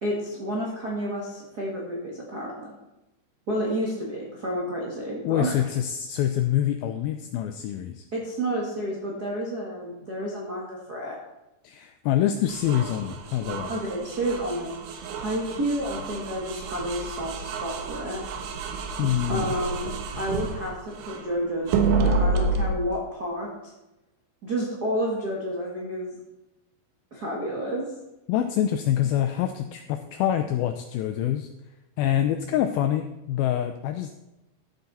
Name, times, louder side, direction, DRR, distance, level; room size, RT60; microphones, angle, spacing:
voice 1, 0.0-2.7 3.5-5.6 8.1-11.2 13.7-18.2 19.3-19.8 20.2-23.5 24.4-26.1 27.1-27.9, equal, 55° right, -4 dB, 1.0 m, -30 dB
voice 2, 5.2-8.1 11.6-13.7 19.0-19.5 28.3-31.5 32.0-34.2, left 11 dB, 85° left, 8 dB, 2.1 m, -26 dB
sound 1, 12.5-21.3 21.7-22.7, right 4 dB, 90° right, 3.3 m, -29 dB
13.0 x 7.8 x 4.1 m, 0.97 s
omnidirectional pair, 4.9 m